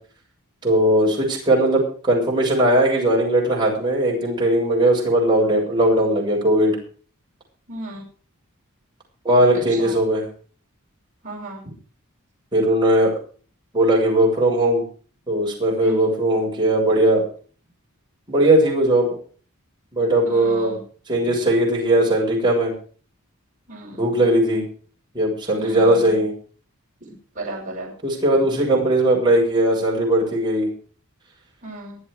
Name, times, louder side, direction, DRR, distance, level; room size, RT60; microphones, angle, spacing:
voice 1, 0.6-6.8 9.2-10.3 12.5-13.1 13.7-14.8 15.3-17.2 18.3-19.2 19.9-20.7 21.1-22.7 23.9-24.6 25.1-26.3 28.0-30.7, right 1 dB, 20° right, -2 dB, 7.1 m, -18 dB
voice 2, 7.7-8.0 9.8-9.9 11.2-11.6 15.8-16.0 20.3-20.8 23.7-24.2 25.5-26.1 27.4-27.9 31.6-32.0, right 2 dB, 35° right, -4 dB, 6.8 m, -35 dB
24.0 x 8.2 x 4.9 m, 0.42 s
head